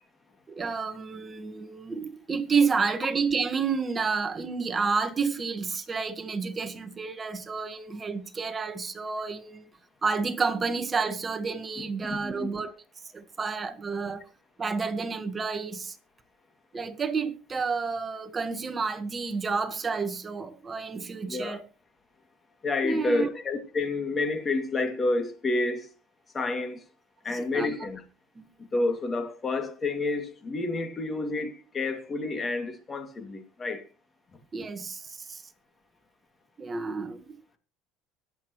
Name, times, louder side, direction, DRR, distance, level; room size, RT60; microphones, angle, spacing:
voice 1, 0.5-9.6 10.0-12.7 13.1-14.2 14.6-16.0 16.7-21.6 22.8-23.3 27.3-27.7 28.4-28.5 34.5-35.4 36.6-37.4, right 5 dB, 20° right, 1.4 m, -30 dB
voice 2, 12.1-12.5 21.3-21.6 22.6-25.9 26.3-26.8 27.2-28.0 28.7-33.8, left 3 dB, 25° left, 2.4 m, -29 dB
23.5 x 8.2 x 3.1 m
cardioid pair, 125°, 0 cm